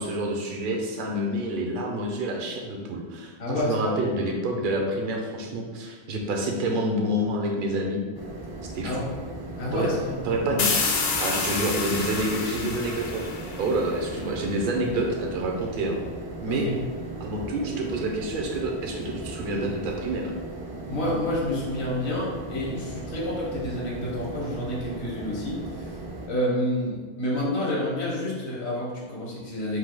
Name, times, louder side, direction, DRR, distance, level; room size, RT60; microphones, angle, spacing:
voice 1, 0.0-8.0 8.7-9.0 9.7-9.9 10.2-10.7 11.2-13.3 13.6-16.0 16.4-16.7 17.2-20.3, right 1 dB, 55° right, 1 dB, 0.8 m, -28 dB
voice 2, 3.4-3.9 8.8-9.1 9.6-10.2 16.5-16.8 20.9-26.0 26.3-29.8, left 1 dB, 75° left, -3 dB, 1.4 m, -29 dB
sound 1, 8.1-26.3, right 2 dB, 30° right, 0.5 m, -38 dB
sound 2, 10.6-14.2, left 4 dB, 50° left, 0.5 m, -28 dB
4.6 x 2.7 x 3.8 m, 1.5 s
omnidirectional pair, 1.1 m